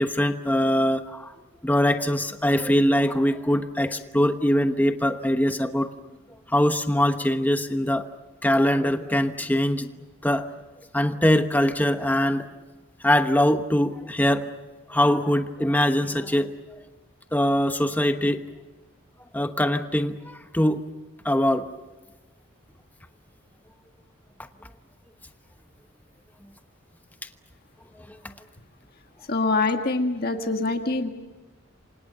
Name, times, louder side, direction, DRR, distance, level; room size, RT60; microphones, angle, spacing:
voice 1, 0.0-1.3 1.6-5.9 6.5-8.1 8.4-9.9 10.2-10.5 10.9-12.5 13.0-14.5 14.9-16.5 17.3-18.4 19.3-20.8 21.2-21.7, equal, 10° left, 8 dB, 1.0 m, -22 dB
voice 2, 29.3-31.1, left 3 dB, 50° left, 5 dB, 1.6 m, -24 dB
28.5 x 26.0 x 6.8 m, 1.2 s
head